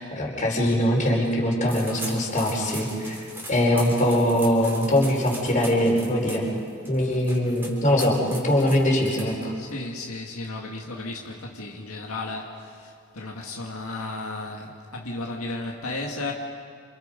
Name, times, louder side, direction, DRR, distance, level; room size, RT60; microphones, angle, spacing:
voice 1, 0.0-3.2 3.5-6.5 6.9-9.5, left 1 dB, 35° left, -2 dB, 4.7 m, -22 dB
sound 1, 1.7-9.7, right 1 dB, 10° right, 3.9 m, -40 dB
voice 2, 9.5-16.3, left 2 dB, 80° left, -1 dB, 2.0 m, -34 dB
28.5 x 27.5 x 5.3 m, 2.2 s
head